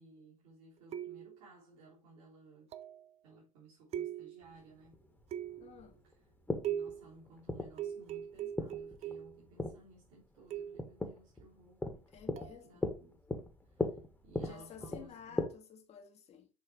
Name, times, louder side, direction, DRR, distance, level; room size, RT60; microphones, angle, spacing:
voice 1, 0.0-2.7 3.2-5.0 6.0-6.2 6.6-13.2 13.6-14.0 14.2-15.4, right 2 dB, 60° right, 3.6 m, -58 dB
sound 1, 0.9-1.5 2.7-3.1 3.9-4.5 5.3-5.8 6.6-7.1 7.8-9.4 10.5-10.9 12.4-12.6, right 10 dB, 35° right, 0.7 m, -40 dB
sound 2, 4.4-15.4, left 2 dB, 10° left, 1.8 m, -40 dB
voice 2, 5.6-6.0 12.1-12.8 14.4-16.5, left 8 dB, 35° left, 1.7 m, -53 dB
7.3 x 5.6 x 3.2 m
figure-of-eight pair, 65°, 18 cm